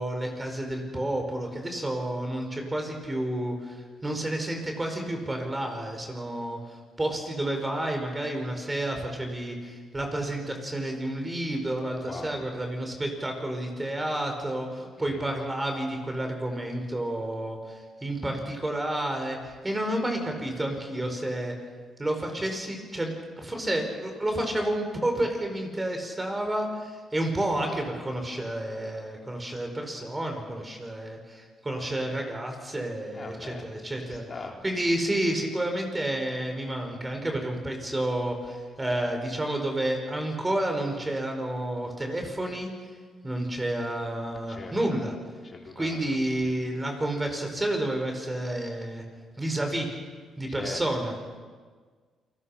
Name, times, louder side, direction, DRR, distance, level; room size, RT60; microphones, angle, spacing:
voice 1, 0.0-21.5 22.0-34.2 34.6-42.7 43.2-45.1 45.7-49.0 49.4-49.9 50.4-51.1, right 1 dB, 15° right, 4 dB, 5.0 m, -30 dB
voice 2, 12.0-12.4 14.8-15.3 33.1-33.7 34.0-34.6 44.5-44.8 45.4-46.5 50.5-50.8, left 3 dB, 40° left, 0 dB, 3.8 m, -41 dB
28.5 x 20.0 x 5.8 m, 1.5 s
cardioid pair, 90°, 0 cm